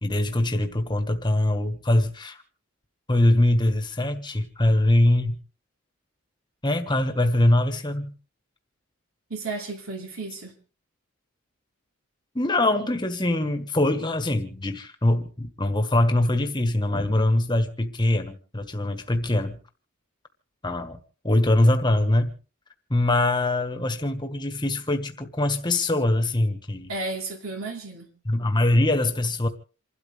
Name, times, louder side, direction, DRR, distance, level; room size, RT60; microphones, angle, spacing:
voice 1, 0.0-2.4 3.1-5.4 6.6-8.1 12.3-19.6 20.6-21.0 21.2-22.3 22.9-26.9 28.2-29.5, left 1 dB, 20° left, 1.5 m, -23 dB
voice 2, 9.3-10.5 26.9-28.1, right 3 dB, 75° right, 2.8 m, -33 dB
28.0 x 12.5 x 3.5 m
head